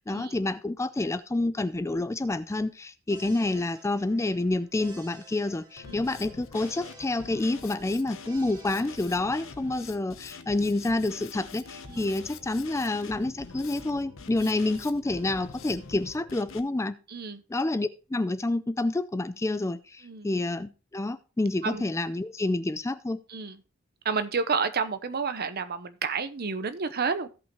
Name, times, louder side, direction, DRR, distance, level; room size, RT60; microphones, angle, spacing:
voice 1, 0.1-17.0 17.5-23.2, left 2 dB, 15° left, 13 dB, 0.4 m, -28 dB
sound 1, 3.1-10.0, right 1 dB, 20° right, 2.2 m, -53 dB
Drum kit, 5.8-16.6, left 5 dB, 70° left, 0.9 m, -45 dB
voice 2, 17.1-17.4 20.0-20.3 21.6-21.9 23.3-23.6 24.0-27.3, right 5 dB, 50° right, 11 dB, 0.8 m, -30 dB
16.5 x 5.6 x 3.0 m, 0.32 s
head